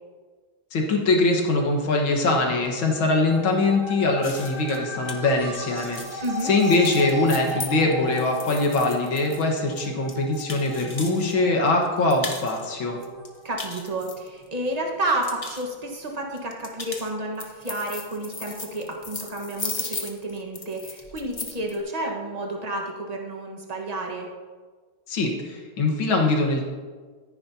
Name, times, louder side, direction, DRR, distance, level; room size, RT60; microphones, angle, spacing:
voice 1, 0.7-13.0 25.1-26.6, left 2 dB, 70° left, 1 dB, 2.3 m, -22 dB
sound 1, 2.3-13.5, left 1 dB, 10° left, 3.5 m, -36 dB
sound 2, 4.2-11.3 11.7-12.7 13.0-14.7 15.0-15.6 16.4-21.8, left 3 dB, 50° left, 0.4 m, -37 dB
voice 2, 6.2-6.6 13.4-24.3, right 1 dB, 20° right, 0 dB, 1.2 m, -30 dB
14.0 x 9.9 x 2.8 m, 1.5 s
omnidirectional pair, 2.2 m